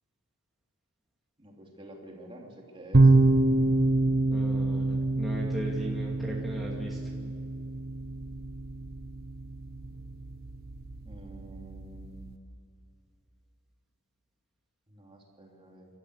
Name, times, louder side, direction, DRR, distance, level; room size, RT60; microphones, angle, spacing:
voice 1, 1.4-3.1 11.0-12.4 14.9-15.9, right 1 dB, 25° right, -1 dB, 3.3 m, -48 dB
sound 1, 2.9-12.4, right 2 dB, 45° right, 1.1 m, -27 dB
voice 2, 4.3-7.0, equal, ahead, -5 dB, 2.5 m, -38 dB
29.5 x 13.5 x 9.6 m, 2.4 s
head